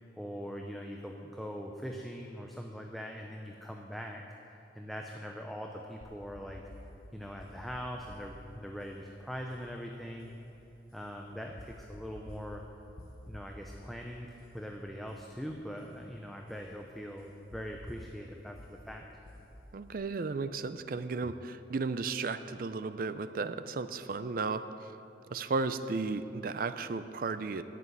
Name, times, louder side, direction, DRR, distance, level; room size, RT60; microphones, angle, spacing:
voice 1, 0.2-4.2 4.7-6.6 7.1-10.3 10.9-12.6 13.3-19.0, equal, ahead, 1 dB, 0.5 m, -42 dB
sound 1, 6.0-20.0, left 1 dB, 50° left, 1.2 m, -53 dB
voice 2, 19.7-24.6 25.3-27.6, right 4 dB, 50° right, 12 dB, 0.4 m, -34 dB
9.9 x 7.5 x 9.4 m, 3.0 s
head